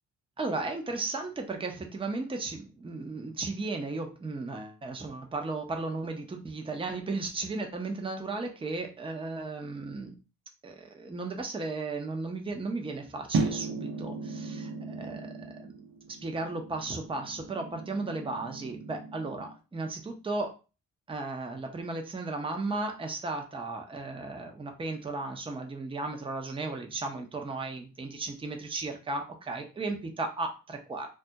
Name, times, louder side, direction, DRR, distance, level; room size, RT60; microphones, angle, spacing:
voice 1, 0.4-10.1 10.6-15.7 16.2-20.5 21.1-31.1, right 3 dB, 15° right, 4 dB, 0.5 m, -35 dB
sound 1, 13.3-19.6, right 3 dB, 85° right, 0.7 m, -36 dB
2.3 x 2.1 x 2.7 m, 0.32 s
cardioid pair, 75°, 35 cm